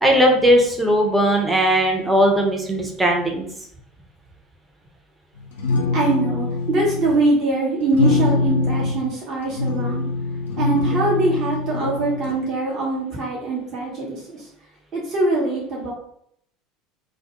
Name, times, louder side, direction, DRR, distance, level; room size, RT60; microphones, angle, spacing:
voice 1, 0.0-3.5, equal, 10° right, 1 dB, 0.6 m, -18 dB
sound 1, 5.4-7.2 7.9-9.0 9.4-12.3, left 3 dB, 75° left, 0.5 m, -23 dB
voice 2, 5.9-10.0 10.6-14.4 14.9-15.9, right 2 dB, 45° right, -4 dB, 0.8 m, -22 dB
2.1 x 2.0 x 2.8 m, 0.70 s
figure-of-eight pair, 70°, 0 cm